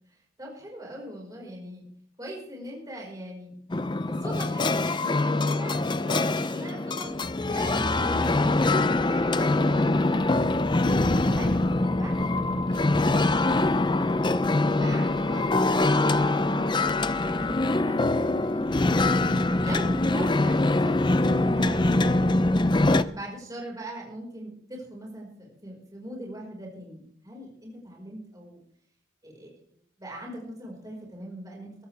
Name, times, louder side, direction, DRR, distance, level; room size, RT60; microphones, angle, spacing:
voice 1, 0.4-1.8 2.2-3.5 4.0-10.7 11.1-11.6 11.9-14.1 14.8-18.7 19.6-28.6 29.2-29.5 30.0-31.8, equal, 20° right, -2 dB, 5.0 m, -41 dB
sound 1, 3.7-23.0, left 2 dB, 25° left, 0.6 m, -24 dB
23.0 x 15.0 x 3.5 m, 0.63 s
head